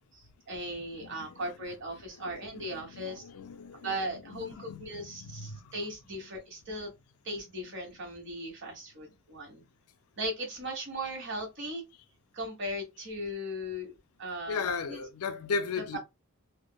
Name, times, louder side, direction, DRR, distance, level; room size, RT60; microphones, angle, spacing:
voice 1, 0.1-3.2 3.8-6.9 7.2-9.6 10.2-11.8 12.3-13.9 14.2-14.6 14.9-15.0 15.9-16.0, equal, 55° right, 1.2 m, -38 dB
voice 2, 0.8-1.6 1.9-5.7 6.1-6.3 7.6-7.8 14.5-16.0, left 5 dB, 85° left, 0.4 m, -38 dB
3.4 x 2.0 x 2.2 m
head